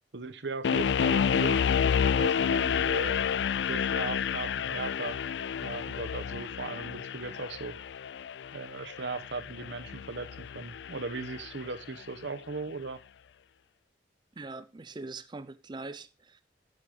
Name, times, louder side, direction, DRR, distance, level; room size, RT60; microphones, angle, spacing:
voice 1, 0.1-1.6 2.2-3.2 3.7-5.2 5.6-7.8 8.5-13.0, right 3 dB, 80° right, 1.0 m, -38 dB
sound 1, 0.6-11.7, left 7 dB, 75° left, 0.4 m, -30 dB
voice 2, 14.4-16.4, right 3 dB, 25° right, 0.5 m, -42 dB
9.7 x 6.7 x 4.9 m
head